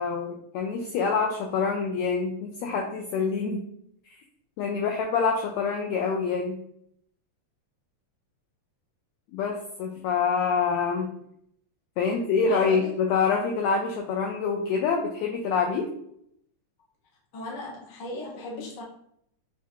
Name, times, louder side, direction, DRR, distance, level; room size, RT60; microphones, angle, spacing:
voice 1, 0.0-3.6 4.6-6.6 9.3-11.1 12.0-15.9, left 5 dB, 80° left, 1 dB, 1.6 m, -26 dB
voice 2, 12.5-12.9 17.3-18.8, left 2 dB, 55° left, -2 dB, 1.2 m, -37 dB
7.5 x 2.5 x 2.8 m, 0.70 s
omnidirectional pair, 3.6 m